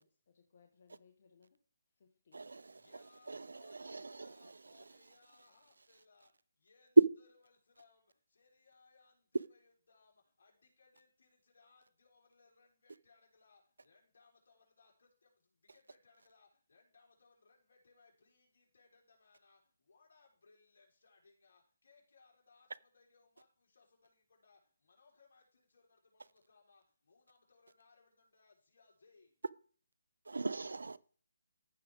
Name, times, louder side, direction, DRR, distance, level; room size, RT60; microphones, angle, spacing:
voice 1, 0.0-1.6 1.9-2.6, left 6 dB, 50° left, 1.2 m, -67 dB
voice 2, 2.7-29.3, left 4 dB, 70° left, 3.9 m, -68 dB
voice 3, 3.8-4.3 30.3-31.0, right 3 dB, 85° right, 0.5 m, -41 dB
14.5 x 4.9 x 3.5 m
hypercardioid pair, 160°, 0 cm